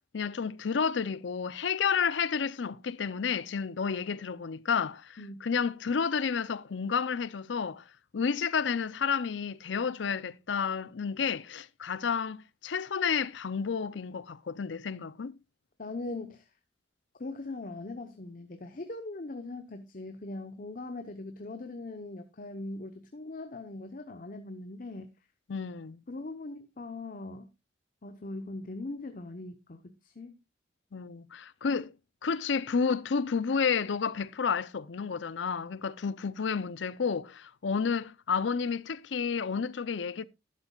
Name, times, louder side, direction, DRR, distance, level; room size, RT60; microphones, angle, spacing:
voice 1, 0.1-7.8 8.1-15.3 25.5-26.0 30.9-31.9 32.2-40.2, left 6 dB, 85° left, 0.5 m, -31 dB
voice 2, 15.8-16.4 17.2-25.1 26.1-27.5 28.0-30.4, left 2 dB, 50° left, 0.9 m, -40 dB
12.5 x 11.0 x 2.3 m
head